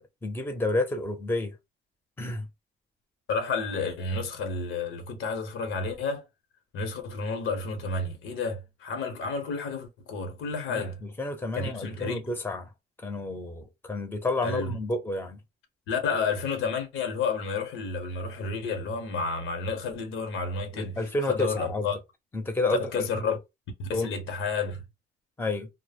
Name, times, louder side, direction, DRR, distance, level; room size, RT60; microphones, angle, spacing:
voice 1, 0.0-1.5 2.2-2.5 10.7-10.9 11.2-12.7 13.0-15.4 20.7-21.9 22.3-23.0 23.9-24.1 25.4-25.7, left 2 dB, 10° left, 0.6 m, -30 dB
voice 2, 3.3-6.2 6.7-11.0 11.5-12.2 14.4-14.7 15.9-21.0 21.3-22.0 22.9-23.4 23.8-24.8, left 4 dB, 85° left, 0.9 m, -31 dB
2.0 x 2.0 x 3.3 m
cardioid pair, 90°, 20 cm